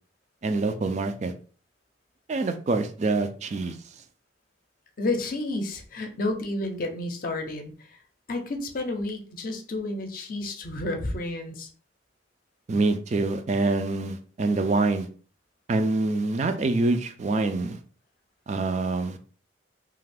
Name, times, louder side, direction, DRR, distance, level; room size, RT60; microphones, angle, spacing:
voice 1, 0.4-1.3 2.3-3.8 12.7-15.1 15.7-17.8 18.5-19.2, right 3 dB, 40° right, 8 dB, 0.3 m, -25 dB
voice 2, 5.0-7.9 8.3-11.7, left 2 dB, 50° left, 5 dB, 0.6 m, -31 dB
2.5 x 2.3 x 3.3 m, 0.41 s
head